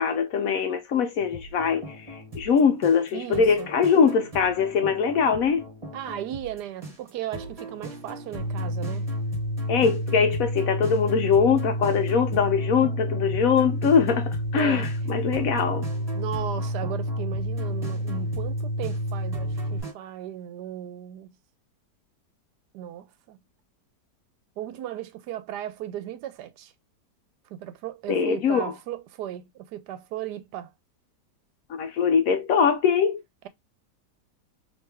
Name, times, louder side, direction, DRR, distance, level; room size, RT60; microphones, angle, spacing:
voice 1, 0.0-5.6 9.7-15.9 28.1-28.7 31.7-33.2, left 6 dB, 70° left, 0.9 m, -22 dB
sound 1, 1.2-19.9, equal, 25° right, 1.2 m, -41 dB
voice 2, 3.1-3.7 5.9-9.1 14.5-14.9 16.1-21.3 22.7-23.4 24.6-26.7 27.5-30.7, right 11 dB, 75° right, 1.1 m, -36 dB
sound 2, 8.4-19.8, equal, 50° left, 1.3 m, -29 dB
3.2 x 2.9 x 3.3 m
omnidirectional pair, 1.8 m